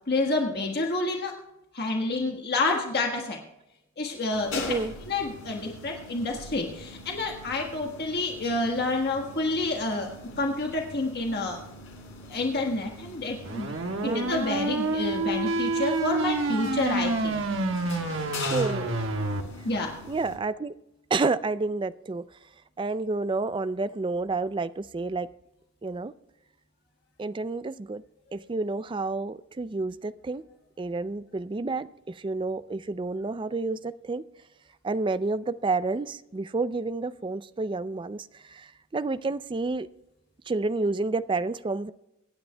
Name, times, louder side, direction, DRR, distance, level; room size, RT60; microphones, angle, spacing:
voice 1, 0.1-1.3 1.7-3.4 4.0-4.7 5.1-10.1 10.4-11.6 12.3-13.7 14.2-17.4 19.6-20.0, left 2 dB, 50° left, 1 dB, 1.5 m, -28 dB
sound 1, 4.3-20.4, left 3 dB, 70° left, 3.6 m, -42 dB
sound 2, 13.4-19.4, right 2 dB, 65° right, 1.3 m, -28 dB
voice 2, 18.5-18.9 20.1-20.7 21.1-22.2 22.8-25.3 25.8-26.1 27.2-28.0 28.3-30.4 30.8-34.2 34.8-39.9 40.5-41.9, right 3 dB, 25° right, 14 dB, 0.4 m, -29 dB
25.0 x 9.7 x 2.3 m, 0.89 s
head